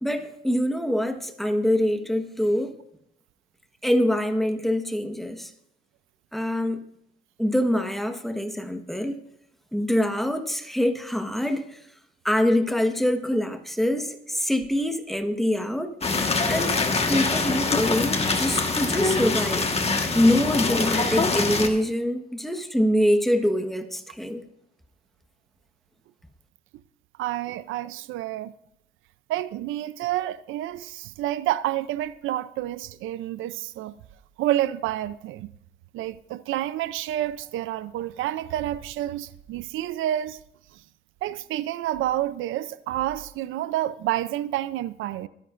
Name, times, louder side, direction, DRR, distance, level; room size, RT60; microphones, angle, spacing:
voice 1, 0.0-2.7 3.8-5.5 6.3-6.8 7.4-9.2 9.7-11.8 12.2-16.0 16.5-16.8 17.1-19.7 20.1-24.4, left 1 dB, ahead, 1.3 m, -24 dB
sound 1, 16.0-21.7, left 3 dB, 30° left, 1.5 m, -24 dB
voice 2, 27.2-28.5 29.3-33.9 34.4-35.5 35.9-40.4 40.7-40.8 41.2-45.3, right 13 dB, 90° right, 0.5 m, -29 dB
21.5 x 10.5 x 2.5 m
cardioid pair, 90°, 20 cm